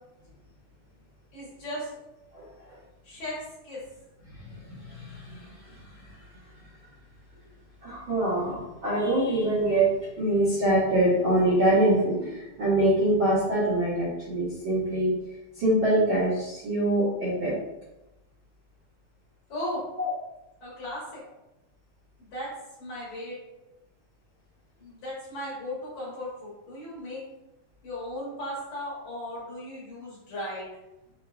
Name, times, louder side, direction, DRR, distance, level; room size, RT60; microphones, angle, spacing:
voice 1, 1.3-1.9 3.0-3.4 3.6-3.8 19.5-19.8 20.6-21.2 22.2-22.5 22.8-23.4 24.8-27.2 27.8-30.7, left 1 dB, 60° left, -7 dB, 2.1 m, -36 dB
voice 2, 2.3-2.8 4.3-6.2 7.8-9.9 10.2-17.5 20.0-20.1, right 1 dB, 65° right, -11 dB, 1.2 m, -25 dB
5.5 x 3.5 x 2.4 m, 0.96 s
omnidirectional pair, 4.3 m